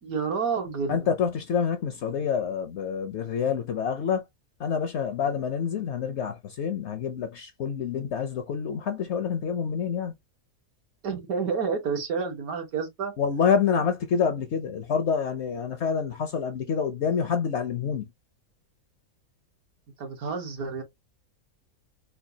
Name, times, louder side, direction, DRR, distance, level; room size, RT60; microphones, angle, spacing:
voice 1, 0.0-1.0 11.0-13.1 20.0-20.8, right 5 dB, 75° right, 1.6 m, -29 dB
voice 2, 0.9-4.3 4.6-10.1 13.2-18.1, left 6 dB, 65° left, 0.7 m, -27 dB
4.4 x 2.2 x 2.7 m
omnidirectional pair, 1.5 m